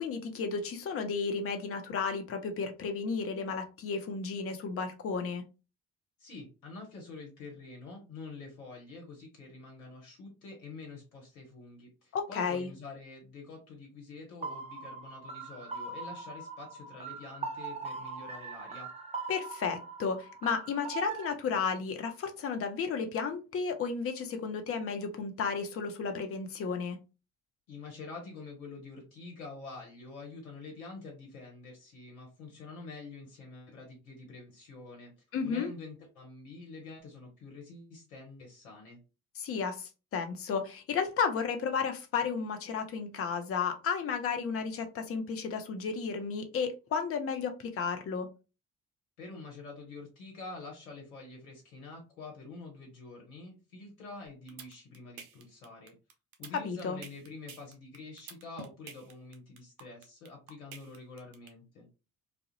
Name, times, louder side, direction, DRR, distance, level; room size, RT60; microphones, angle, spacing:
voice 1, 0.0-5.4 12.1-12.7 19.3-27.0 35.3-35.7 39.4-48.3 56.6-57.0, left 5 dB, 35° left, 6 dB, 0.6 m, -33 dB
voice 2, 6.2-18.9 27.7-35.1 35.4-39.0 49.2-55.9 56.4-61.9, left 3 dB, 80° left, 0 dB, 0.8 m, -47 dB
sound 1, 14.4-21.3, right 4 dB, 15° right, 0.5 m, -41 dB
sound 2, 54.3-61.5, right 6 dB, 80° right, 0.6 m, -48 dB
2.3 x 2.0 x 2.7 m, 0.31 s
figure-of-eight pair, 50°, 42 cm